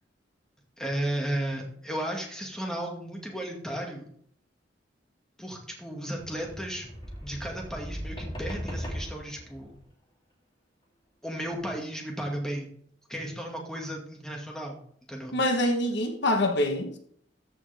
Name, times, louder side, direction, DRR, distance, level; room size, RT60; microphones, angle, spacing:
voice 1, 0.8-4.1 5.4-6.9 7.2-9.8 11.2-12.7 13.1-14.8 15.1-15.3, right 1 dB, 5° left, 2.1 m, -34 dB
sound 1, 6.2-9.8 11.5-11.6, equal, 25° left, 3.2 m, -38 dB
voice 2, 15.3-17.0, left 1 dB, 65° left, 1.3 m, -25 dB
14.0 x 6.8 x 3.5 m
head